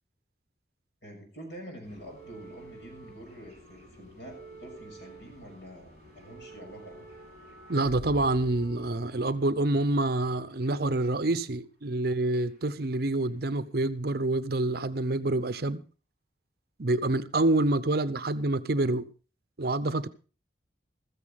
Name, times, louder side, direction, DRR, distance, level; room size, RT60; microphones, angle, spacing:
voice 1, 1.0-7.1, equal, 70° left, 6.6 m, -46 dB
sound 1, 1.8-11.3 12.2-13.3 13.5-13.8 14.7-14.8, right 2 dB, 40° left, 7.7 m, -49 dB
voice 2, 7.7-15.8 16.8-19.1 19.6-20.1, right 2 dB, 55° right, 0.8 m, -27 dB
15.0 x 14.0 x 3.6 m
head